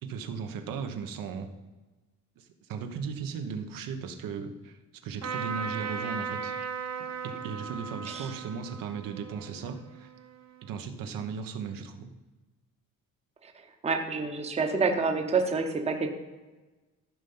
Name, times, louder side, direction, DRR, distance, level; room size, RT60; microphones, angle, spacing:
voice 1, 0.0-1.5 2.4-6.6 7.2-10.1 10.6-12.1, right 6 dB, 80° right, 7 dB, 1.1 m, -37 dB
Trumpet, 5.2-10.7, right 6 dB, 50° right, 1.2 m, -37 dB
voice 2, 13.8-16.1, right 4 dB, 20° right, 5 dB, 0.9 m, -28 dB
14.0 x 5.7 x 5.5 m, 1.2 s
cardioid pair, 170°, 33 cm